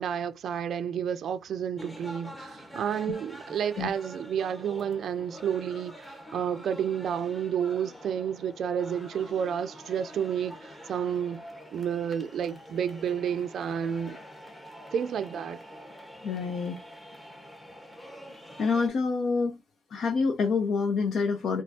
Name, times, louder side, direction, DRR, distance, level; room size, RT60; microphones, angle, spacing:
voice 1, 0.0-11.4 11.7-14.2 14.9-15.6, right 8 dB, 65° right, 0.4 m, -30 dB
sound 1, 1.8-18.9, equal, 15° left, 1.2 m, -46 dB
voice 2, 16.2-16.8 18.6-19.6 19.9-21.6, left 4 dB, 60° left, 0.7 m, -27 dB
4.3 x 2.3 x 2.7 m
cardioid pair, 90°, 0 cm